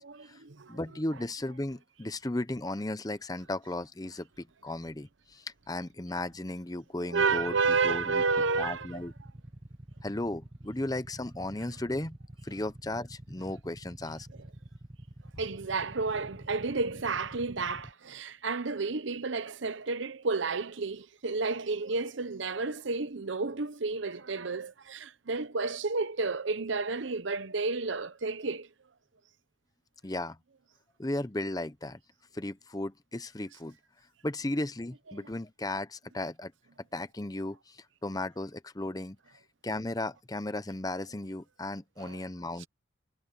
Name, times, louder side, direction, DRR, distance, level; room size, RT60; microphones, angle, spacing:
voice 1, 0.0-0.8 7.1-8.9 15.4-28.7 42.0-42.2, right 4 dB, 70° right, 0.9 m, -31 dB
voice 2, 0.7-7.6 7.8-8.2 8.6-9.1 10.0-12.2 12.4-14.3 30.0-30.4 31.0-32.0 32.3-33.8 34.2-36.5 36.9-39.2 39.6-42.7, left 1 dB, 20° left, 0.7 m, -35 dB
Motorcycle / Idling, 7.2-17.9, right 1 dB, 30° right, 1.1 m, -48 dB
head